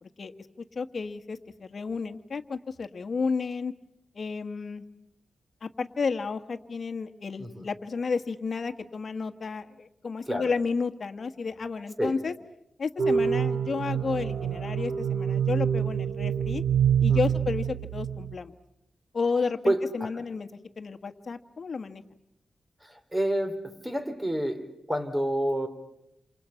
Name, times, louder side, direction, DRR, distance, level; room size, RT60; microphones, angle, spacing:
voice 1, 0.0-3.7 4.1-4.8 5.6-12.3 12.8-16.6 17.0-18.5 19.1-20.5 20.8-22.0, left 4 dB, 50° left, 7 dB, 1.6 m, -32 dB
sound 1, 13.0-18.3, right 8 dB, 65° right, 1.1 m, -26 dB
voice 2, 17.1-17.4 19.7-20.2 22.8-25.7, right 1 dB, 10° right, 7 dB, 3.6 m, -29 dB
28.0 x 28.0 x 5.8 m, 0.79 s
wide cardioid pair, 95°, 0 cm